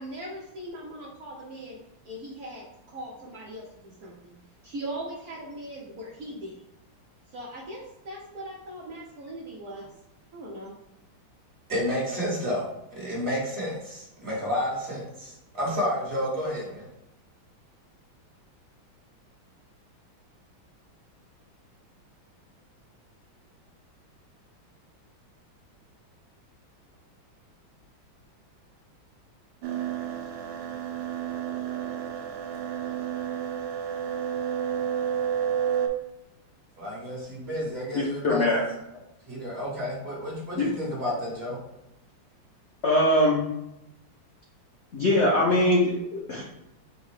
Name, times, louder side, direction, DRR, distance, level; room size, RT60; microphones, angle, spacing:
voice 1, 0.0-1.8 2.0-4.4 4.6-6.5 7.3-9.9 10.3-10.7, right 1 dB, 60° right, -4 dB, 1.0 m, -39 dB
voice 2, 11.7-12.6 12.9-16.9 36.8-38.5 39.3-41.6, equal, 35° right, -5 dB, 1.4 m, -30 dB
sound 1, 29.6-35.9, right 8 dB, 80° right, 1.3 m, -30 dB
voice 3, 38.2-38.6 40.6-40.7 42.8-43.4 44.9-46.4, left 1 dB, 85° left, -4 dB, 0.6 m, -22 dB
4.6 x 2.1 x 4.7 m, 0.87 s
omnidirectional pair, 2.2 m